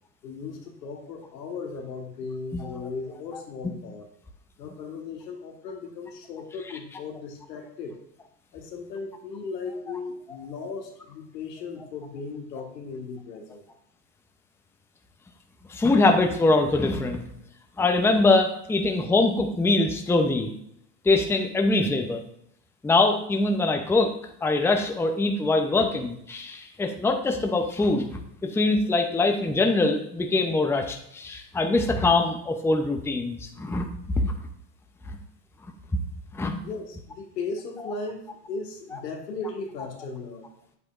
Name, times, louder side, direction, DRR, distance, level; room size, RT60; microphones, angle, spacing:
voice 1, 0.2-4.1 4.6-8.0 8.5-13.6 36.6-40.5, left 4 dB, 80° left, 2 dB, 1.8 m, -37 dB
voice 2, 2.5-2.9 15.7-17.2 17.8-20.5 21.0-22.2 22.8-24.1 24.4-33.9 34.2-34.3 36.3-36.6, left 2 dB, 5° left, 4 dB, 0.7 m, -23 dB
8.3 x 8.0 x 2.6 m, 0.74 s
hypercardioid pair, 100°, 48 cm